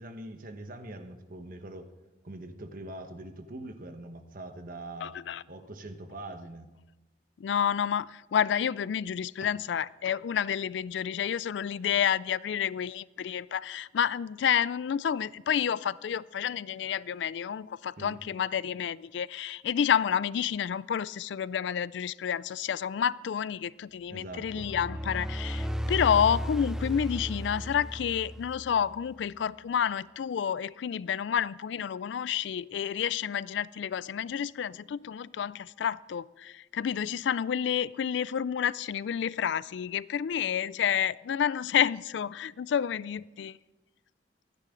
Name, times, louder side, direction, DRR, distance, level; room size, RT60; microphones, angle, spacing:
voice 1, 0.0-1.9 2.2-5.2 5.5-6.7 18.0-18.2 24.1-24.7, right 1 dB, 50° right, 1.2 m, -43 dB
voice 2, 5.0-5.4 7.4-43.6, left 8 dB, 70° left, 0.3 m, -29 dB
sound 1, 24.3-29.0, equal, 5° right, 0.4 m, -35 dB
25.0 x 9.8 x 3.8 m
head